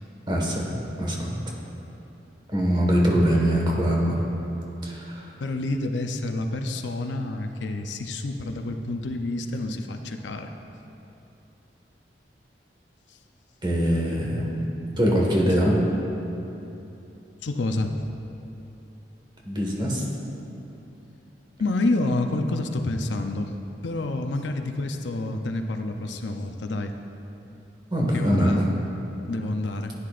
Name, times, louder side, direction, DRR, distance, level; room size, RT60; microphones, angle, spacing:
voice 1, 0.3-0.6 1.0-1.3 2.5-4.2 4.8-5.3 13.6-15.8 19.4-20.0 27.9-28.6, equal, 25° right, -2 dB, 1.6 m, -23 dB
voice 2, 5.4-10.5 13.1-13.2 17.4-18.0 21.6-23.5 23.8-26.9 28.1-28.7 29.3-29.9, left 2 dB, 85° left, 5 dB, 0.6 m, -28 dB
15.5 x 9.7 x 2.5 m, 2.9 s
head